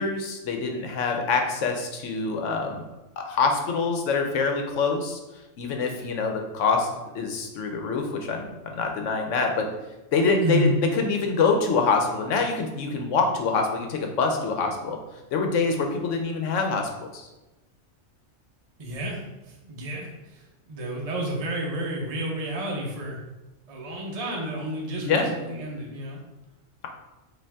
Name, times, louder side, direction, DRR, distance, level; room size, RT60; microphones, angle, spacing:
voice 1, 0.0-2.8 3.2-5.2 5.6-6.9 7.1-9.7 10.1-15.0 15.3-17.3 25.1-25.3, left 4 dB, 75° left, 3 dB, 1.0 m, -25 dB
voice 2, 10.4-10.8 18.8-19.2 19.5-20.4 20.7-23.2 23.7-26.2, right 1 dB, 35° right, -2 dB, 0.7 m, -30 dB
5.2 x 2.6 x 3.5 m, 1.1 s
omnidirectional pair, 1.3 m